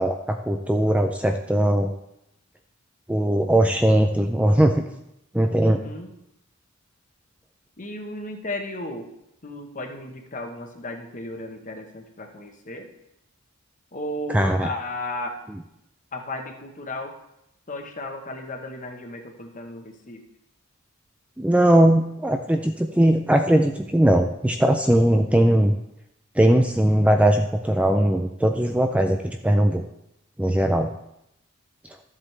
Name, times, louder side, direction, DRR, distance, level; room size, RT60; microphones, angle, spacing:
voice 1, 0.0-1.9 3.1-4.8 5.3-5.8 14.3-14.7 21.4-25.7 26.4-29.8 30.4-30.9, right 1 dB, 5° right, 4 dB, 0.3 m, -19 dB
voice 2, 5.6-6.1 7.8-9.1 9.4-12.9 13.9-15.5 16.1-17.1 17.7-20.2, left 1 dB, 35° left, 4 dB, 1.1 m, -34 dB
13.0 x 7.5 x 3.3 m, 0.84 s
head